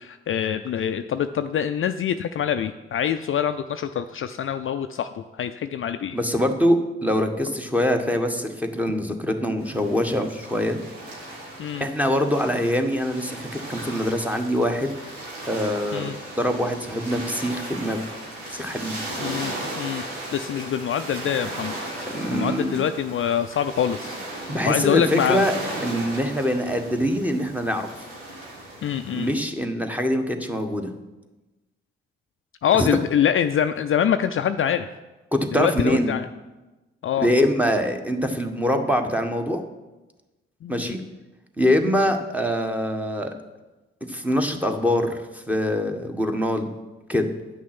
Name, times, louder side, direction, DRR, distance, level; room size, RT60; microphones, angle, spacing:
voice 1, 0.0-6.2 11.6-11.8 15.9-16.1 19.2-20.0 20.3-21.8 22.3-25.4 28.8-29.3 32.6-34.9 35.5-36.3 37.0-37.3 40.6-40.9, left 9 dB, 45° left, 9 dB, 0.5 m, -25 dB
voice 2, 6.1-10.8 11.8-14.9 15.5-16.1 16.4-18.0 18.5-18.9 22.1-22.8 24.5-25.5 25.8-27.9 29.1-30.9 32.8-32.9 35.3-36.1 37.2-39.6 40.7-41.0 41.6-43.3 44.1-46.7 47.1-47.3, equal, 5° right, 5 dB, 1.4 m, -24 dB
sound 1, 9.6-29.4, right 1 dB, 85° right, 1.8 m, -36 dB
8.6 x 6.2 x 6.0 m, 1.1 s
hypercardioid pair, 45°, 29 cm